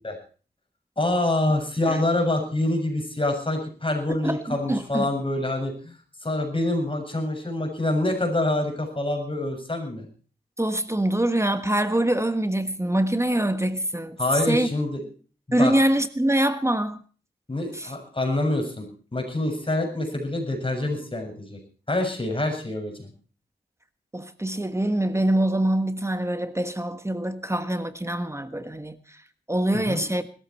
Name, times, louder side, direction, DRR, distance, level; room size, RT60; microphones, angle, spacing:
voice 1, 1.0-6.0 6.2-10.1 14.2-15.0 15.5-15.7 17.5-21.6 21.9-23.1 29.9-30.0, left 2 dB, 30° left, 7.1 m, -26 dB
voice 2, 4.2-5.1 10.6-14.2 14.5-14.7 15.5-17.0 17.7-17.9 24.1-29.2 29.5-30.2, right 1 dB, 15° right, 1.4 m, -24 dB
20.0 x 13.5 x 4.5 m
cardioid pair, 50°, 17 cm